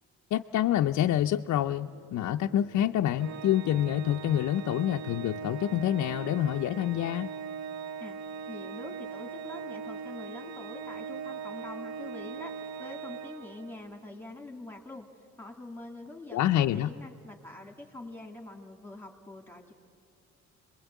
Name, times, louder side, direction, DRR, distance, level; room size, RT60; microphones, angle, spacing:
voice 1, 0.3-7.3 16.3-16.9, left 11 dB, 65° left, 4 dB, 0.5 m, -27 dB
sound 1, 1.6-7.8, right 4 dB, 45° right, 2.9 m, -56 dB
Organ, 3.2-13.9, right 6 dB, 65° right, 1.0 m, -40 dB
voice 2, 8.5-19.7, left 2 dB, 5° left, 2 dB, 2.3 m, -45 dB
27.0 x 21.0 x 8.2 m, 2.3 s
cardioid pair, 90°, 30 cm